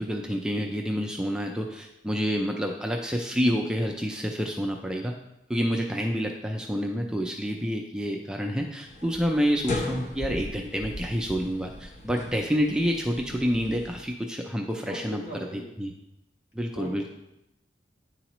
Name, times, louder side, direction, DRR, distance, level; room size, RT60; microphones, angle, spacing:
voice 1, 0.0-5.1 5.5-15.2 15.5-15.9 16.5-17.1, equal, 5° right, 1 dB, 0.4 m, -28 dB
sound 1, 8.9-14.0, left 1 dB, 40° left, 0.8 m, -37 dB
voice 2, 14.9-15.7 16.7-17.1, equal, 60° left, -4 dB, 1.9 m, -38 dB
9.4 x 4.0 x 3.0 m, 0.89 s
head